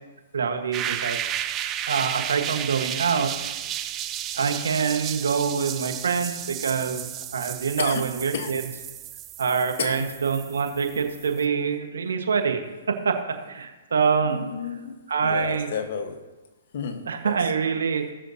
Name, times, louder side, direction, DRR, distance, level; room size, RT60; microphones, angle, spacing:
voice 1, 0.3-1.2 1.9-3.3 4.3-8.6 9.4-14.5 15.1-15.7 17.1-18.1, right 6 dB, 85° right, 5 dB, 1.3 m, -25 dB
sound 1, 0.7-11.4, right 11 dB, 25° right, 0.5 m, -33 dB
voice 2, 14.2-14.9 15.2-16.2 16.7-17.4, left 6 dB, 60° left, 6 dB, 1.2 m, -31 dB
18.5 x 6.5 x 2.8 m, 1.2 s
hypercardioid pair, 135°, 0 cm